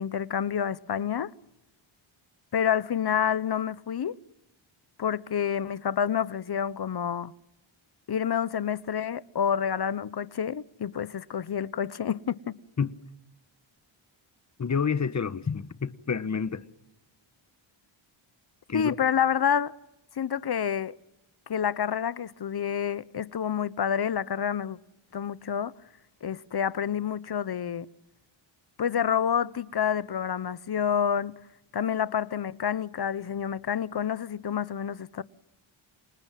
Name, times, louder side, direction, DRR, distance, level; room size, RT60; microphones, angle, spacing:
voice 1, 0.0-1.3 2.5-4.1 5.0-7.3 8.1-12.6 18.7-19.7 20.2-20.9 21.5-24.8 25.1-25.7 26.2-27.9 28.8-31.3 31.7-35.2, left 8 dB, 50° left, 1.0 m, -28 dB
voice 2, 14.6-16.7 18.7-19.0, left 6 dB, 35° left, 1.2 m, -29 dB
29.0 x 27.0 x 7.5 m
wide cardioid pair, 145°, 49 cm